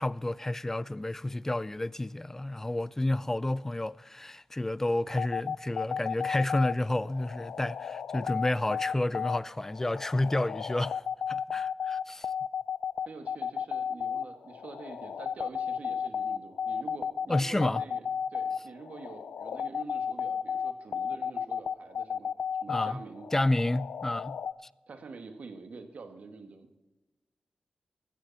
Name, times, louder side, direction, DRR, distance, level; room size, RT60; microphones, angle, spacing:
voice 1, 0.0-11.0 11.3-12.3 17.3-17.8 22.7-23.0 23.3-24.4, left 1 dB, 15° left, 0.4 m, -30 dB
sound 1, 5.1-24.5, left 7 dB, 85° left, 0.5 m, -33 dB
voice 2, 13.1-18.1 18.3-22.3 22.6-23.3 24.9-26.8, right 4 dB, 65° right, 1.9 m, -46 dB
15.5 x 13.5 x 4.2 m
cardioid pair, 75°, 3 cm